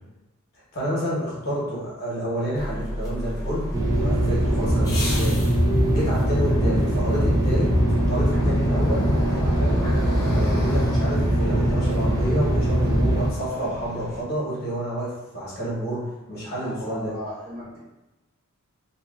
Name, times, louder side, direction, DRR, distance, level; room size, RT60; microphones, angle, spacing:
voice 1, 0.5-5.4 5.9-7.7 8.1-9.9 10.3-17.1, equal, 45° left, -7 dB, 1.0 m, -29 dB
sound 1, 2.5-14.2, equal, 15° left, 0.7 m, -33 dB
sound 2, 3.7-13.3, equal, 15° right, 0.3 m, -21 dB
voice 2, 6.3-6.6 16.5-17.8, left 1 dB, 45° right, -9 dB, 1.2 m, -37 dB
2.8 x 2.4 x 2.3 m, 1.0 s
head